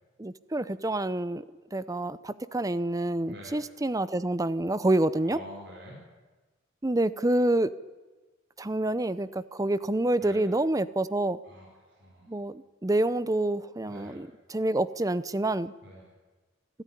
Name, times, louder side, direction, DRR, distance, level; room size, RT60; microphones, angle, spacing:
voice 1, 0.2-1.5 1.7-5.4 6.8-7.7 8.6-11.4 12.3-15.7, right 1 dB, 20° right, 16 dB, 0.6 m, -27 dB
voice 2, 3.3-3.6 5.2-6.0 10.2-10.5 11.4-12.4 13.9-14.2 15.8-16.1, equal, 60° right, -2 dB, 4.7 m, -46 dB
26.0 x 13.0 x 10.0 m, 1.3 s
head